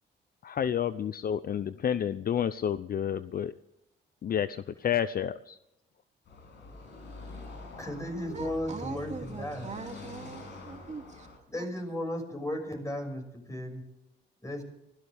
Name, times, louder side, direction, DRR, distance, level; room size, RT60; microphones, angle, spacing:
voice 1, 0.4-3.5 4.2-5.6, left 9 dB, 50° left, 14 dB, 0.6 m, -30 dB
Car passing by / Traffic noise roadway noise, 6.2-11.4, left 3 dB, 65° left, 7.5 m, -45 dB
voice 2, 7.8-9.7 11.5-13.8 14.4-14.6, left 1 dB, 15° left, 4 dB, 6.2 m, -35 dB
voice 3, 8.3-11.3, right 4 dB, 35° right, 3 dB, 2.9 m, -42 dB
24.5 x 16.5 x 3.5 m, 0.85 s
cardioid pair, 90°, 20 cm